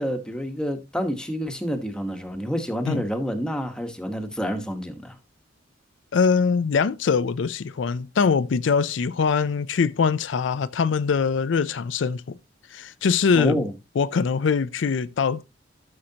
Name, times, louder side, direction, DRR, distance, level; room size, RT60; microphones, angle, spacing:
voice 1, 0.0-5.2 13.3-13.7, equal, 5° left, 1.2 m, -28 dB
voice 2, 6.1-12.4 12.7-13.7 14.0-15.4, left 5 dB, 75° left, 0.4 m, -23 dB
12.5 x 6.4 x 2.8 m
head